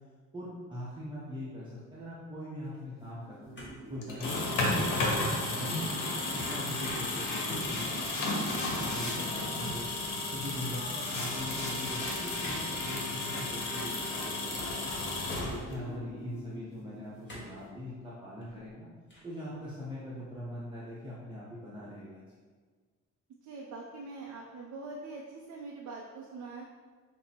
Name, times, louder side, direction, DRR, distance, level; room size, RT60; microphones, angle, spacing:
voice 1, 0.3-3.6 3.9-6.0 6.3-10.0 10.3-15.0 15.4-18.9 19.2-22.4, left 1 dB, 15° right, -8 dB, 0.7 m, -42 dB
sound 1, 3.0-9.2 11.0-17.3, left 1 dB, 60° left, 1.3 m, -42 dB
sound 2, 3.5-4.3 4.7-5.1 6.8-7.1 7.3-7.6 9.3-10.1 12.4-12.7 13.2-13.4 14.3-15.1 15.8-15.9 17.3-17.6 18.2-18.7 19.1-19.4, equal, 40° left, 1.4 m, -49 dB
sound 3, 4.0-15.9, left 2 dB, 80° left, 0.8 m, -33 dB
voice 2, 23.4-26.6, right 3 dB, 65° right, -2 dB, 0.5 m, -43 dB
5.8 x 2.1 x 2.8 m, 1.5 s
cardioid pair, 90°, 30 cm